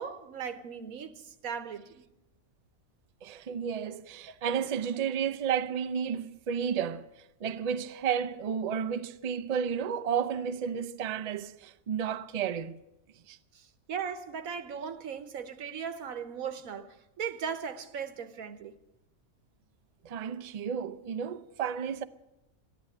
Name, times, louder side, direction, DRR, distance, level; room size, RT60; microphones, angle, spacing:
voice 1, 0.0-2.0 13.5-18.7, right 7 dB, 80° right, 1.4 m, -38 dB
voice 2, 3.2-7.1 7.4-12.8 13.3-13.4 20.0-22.0, right 7 dB, 55° right, 0.4 m, -32 dB
13.5 x 11.0 x 9.6 m
omnidirectional pair, 1.5 m